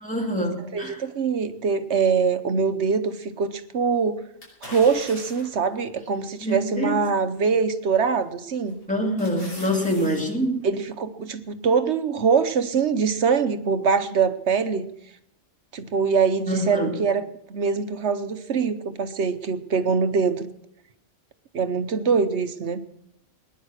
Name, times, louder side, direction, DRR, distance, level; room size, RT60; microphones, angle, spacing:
voice 1, 0.0-1.0 6.4-7.0 8.9-10.7 16.5-17.0, equal, 5° left, 0 dB, 2.6 m, -25 dB
voice 2, 0.7-4.2 4.7-8.8 10.0-10.1 10.6-14.9 15.7-17.2 17.5-20.5 21.5-22.8, right 5 dB, 55° right, 10 dB, 1.1 m, -23 dB
sound 1, 4.4-5.6 6.2-6.3 7.9-8.3 8.7-10.2 10.6-10.7, left 1 dB, 60° left, 6.1 m, -41 dB
19.0 x 10.5 x 6.4 m, 0.76 s
omnidirectional pair, 1.4 m